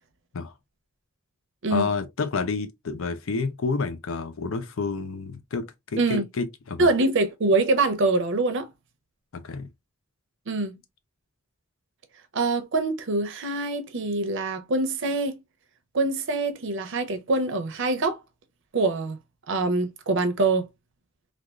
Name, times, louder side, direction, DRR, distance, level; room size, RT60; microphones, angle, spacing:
voice 1, 1.7-6.9 9.3-9.7, left 4 dB, 75° left, 0.6 m, -29 dB
voice 2, 6.8-8.7 10.5-10.8 12.3-15.4 15.9-18.2 18.7-19.2 19.5-20.7, right 3 dB, 60° right, 0.6 m, -24 dB
3.4 x 2.4 x 2.3 m
head